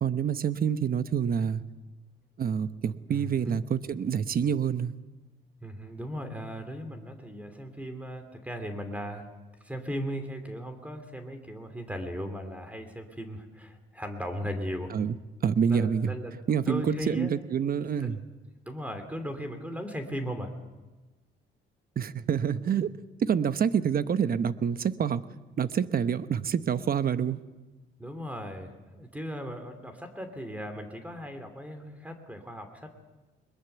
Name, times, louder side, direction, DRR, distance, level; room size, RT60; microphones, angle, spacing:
voice 1, 0.0-1.6 2.4-4.9 14.9-15.2 15.4-16.1 16.5-18.2 22.0-22.9 23.2-25.2 25.6-27.4, right 7 dB, 50° right, 13 dB, 1.0 m, -27 dB
voice 2, 3.1-3.6 5.6-9.2 9.6-14.9 15.7-16.3 16.6-17.3 18.0-18.1 18.7-20.5 28.0-33.0, equal, 5° right, 7 dB, 3.0 m, -37 dB
21.5 x 21.5 x 7.0 m, 1.2 s
cardioid pair, 90°, 20 cm